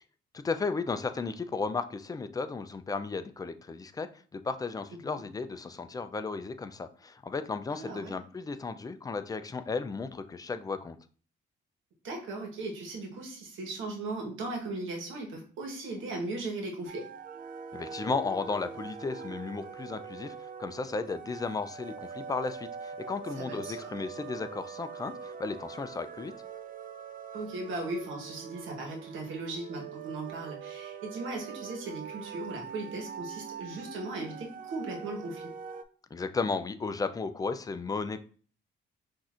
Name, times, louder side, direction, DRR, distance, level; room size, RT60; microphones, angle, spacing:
voice 1, 0.3-11.0 17.7-26.3 36.1-38.2, left 4 dB, 20° left, 10 dB, 0.4 m, -34 dB
voice 2, 7.7-8.2 12.0-17.1 23.4-23.9 27.3-35.4, right 2 dB, 80° right, 1 dB, 1.2 m, -38 dB
sound 1, 16.9-35.8, right 6 dB, 45° right, 0.4 m, -43 dB
5.8 x 2.6 x 2.4 m, 0.43 s
cardioid pair, 90°, 20 cm